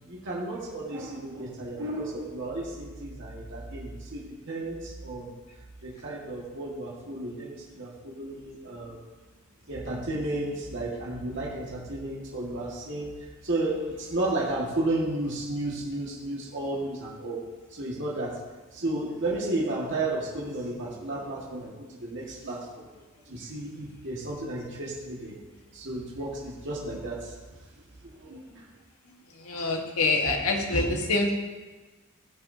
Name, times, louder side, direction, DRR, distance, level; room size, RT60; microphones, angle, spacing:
voice 1, 0.1-5.3 5.8-9.0 9.7-13.1 13.4-18.4 18.7-21.7 22.0-22.9 23.3-25.4 25.7-27.4 28.0-28.6, right 2 dB, 60° right, -4 dB, 1.8 m, -33 dB
voice 2, 29.4-31.3, left 2 dB, 90° left, 1 dB, 1.5 m, -25 dB
18.0 x 6.0 x 2.8 m, 1.3 s
head